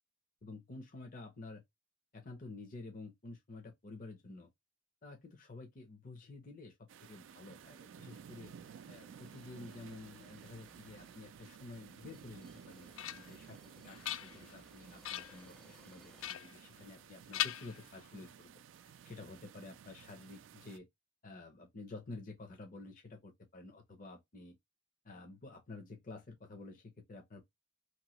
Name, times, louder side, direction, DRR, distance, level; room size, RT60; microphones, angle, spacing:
voice 1, 0.4-1.6 2.1-4.5 5.0-6.8 7.0-8.5 8.9-12.9 13.1-13.6 13.8-18.5 18.8-20.8 21.2-24.6 25.0-27.4, left 3 dB, 45° left, 0.7 m, -50 dB
sound 1, 6.9-20.8, right 7 dB, 70° right, 0.3 m, -55 dB
sound 2, 8.4-16.3, equal, 5° left, 0.5 m, -64 dB
sound 3, 12.5-13.5 13.9-14.6 15.0-15.5 16.2-17.1 17.3-18.3, left 12 dB, 80° left, 0.3 m, -41 dB
3.0 x 2.7 x 2.9 m
head